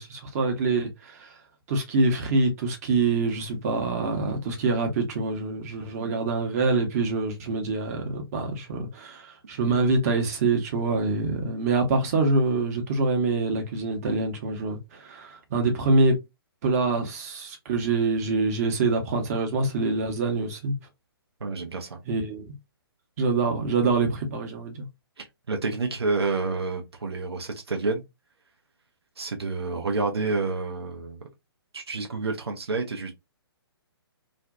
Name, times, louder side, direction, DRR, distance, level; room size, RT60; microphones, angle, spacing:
voice 1, 0.0-1.3 1.7-16.2 16.6-20.7 22.0-22.4 23.2-24.9, right 3 dB, 40° right, 0.8 m, -25 dB
voice 2, 5.8-6.2 21.4-22.0 25.2-28.0 29.2-31.2 31.7-33.2, right 3 dB, 80° right, 0.6 m, -29 dB
2.5 x 2.1 x 2.4 m
figure-of-eight pair, 130°, 13 cm